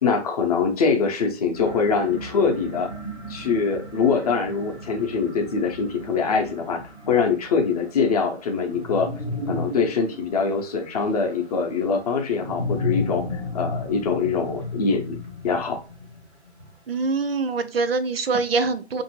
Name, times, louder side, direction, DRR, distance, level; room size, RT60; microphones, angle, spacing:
voice 1, 0.0-2.9 3.3-9.1 9.5-13.2 13.5-15.2 15.4-15.8, left 5 dB, 35° left, 3 dB, 0.6 m, -23 dB
sound 1, 1.5-17.0, left 2 dB, 10° right, 0.4 m, -34 dB
voice 2, 16.9-19.0, right 4 dB, 60° right, 9 dB, 0.5 m, -24 dB
5.5 x 2.6 x 2.9 m, 0.34 s
figure-of-eight pair, 125°, 33 cm